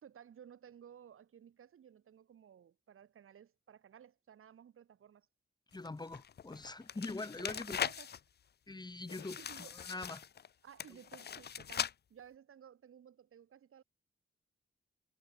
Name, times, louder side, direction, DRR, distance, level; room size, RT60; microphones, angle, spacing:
voice 1, 0.0-5.3 7.2-8.1 9.4-9.8 10.6-13.8, right 8 dB, 90° right, 4.4 m, -57 dB
sound 1, 5.7-8.2 9.1-10.5 10.8-11.9, left 8 dB, 50° left, 0.7 m, -41 dB
voice 2, 5.7-7.8 8.7-10.2, left 2 dB, 20° left, 2.8 m, -43 dB
wide cardioid pair, 150°, 21 cm